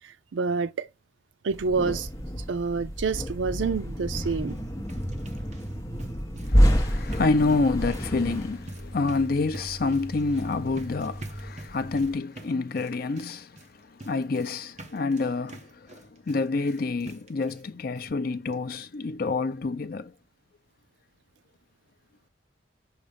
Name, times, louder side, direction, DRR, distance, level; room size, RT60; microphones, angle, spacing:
voice 1, 0.3-0.9 1.4-2.1 2.5-4.6, right 4 dB, 75° right, 0.4 m, -27 dB
sound 1, 1.5-12.1, equal, 15° left, 1.1 m, -29 dB
sound 2, 4.5-17.7 17.9-18.1 18.5-18.6 18.9-19.0, right 2 dB, 35° right, 1.0 m, -47 dB
voice 2, 6.4-13.5 14.0-20.1, left 3 dB, 50° left, 0.5 m, -28 dB
6.6 x 2.9 x 5.0 m
head